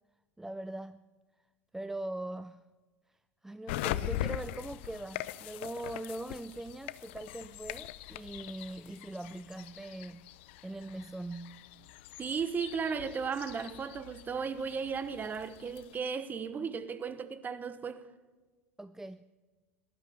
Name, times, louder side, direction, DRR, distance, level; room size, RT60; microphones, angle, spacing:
voice 1, 0.4-1.0 1.7-2.7 3.1-10.3 10.6-11.7 18.8-19.2, right 1 dB, 5° right, 0.4 m, -41 dB
sound 1, 3.7-16.0, left 14 dB, 60° left, 0.6 m, -42 dB
voice 2, 12.2-18.0, right 6 dB, 25° right, 1.1 m, -35 dB
18.5 x 12.0 x 5.9 m
figure-of-eight pair, 80°, 7 cm